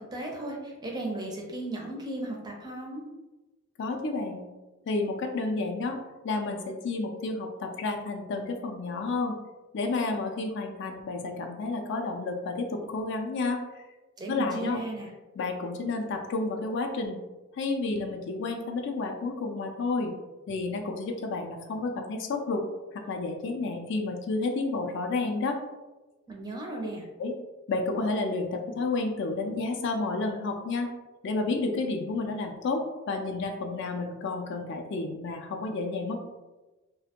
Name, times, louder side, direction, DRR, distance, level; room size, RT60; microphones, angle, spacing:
voice 1, 0.0-3.0 14.2-15.1 26.3-27.0, right 2 dB, 20° right, 0 dB, 0.4 m, -36 dB
voice 2, 3.8-4.4 4.9-6.0 6.2-9.4 9.7-13.6 14.3-14.8 15.3-17.2 17.6-20.1 20.5-22.7 22.9-25.6 27.2-27.3 27.7-30.9 31.2-36.2, left 3 dB, 60° left, 4 dB, 0.3 m, -31 dB
2.4 x 2.1 x 2.8 m, 1.1 s
head